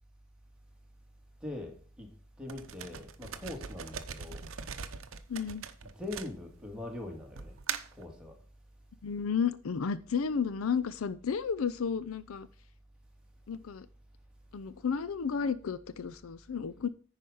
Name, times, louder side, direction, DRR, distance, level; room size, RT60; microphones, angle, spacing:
voice 1, 1.4-2.1 2.4-4.4 5.9-7.6 8.0-8.3, left 2 dB, 5° right, 0 dB, 2.0 m, -42 dB
sound 1, 2.5-6.8 7.4-8.0, right 7 dB, 65° right, 0.8 m, -41 dB
voice 2, 5.3-5.6 9.0-12.5 13.5-13.9 14.5-16.9, left 6 dB, 70° left, 15 dB, 0.5 m, -32 dB
10.0 x 5.0 x 5.4 m, 0.41 s
head